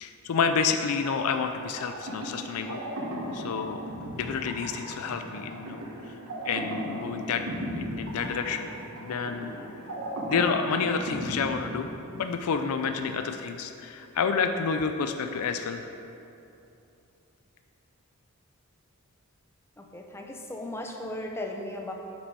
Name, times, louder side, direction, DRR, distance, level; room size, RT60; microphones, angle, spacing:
voice 1, 0.0-2.8 3.3-3.9 4.1-6.2 6.4-8.7 9.0-9.5 10.3-15.9, left 5 dB, 80° left, 7 dB, 0.4 m, -29 dB
sound 1, 1.8-12.4, right 1 dB, 85° right, 1.5 m, -37 dB
voice 2, 19.8-21.9, left 1 dB, 10° left, 2 dB, 0.5 m, -36 dB
6.7 x 6.1 x 4.6 m, 2.7 s
head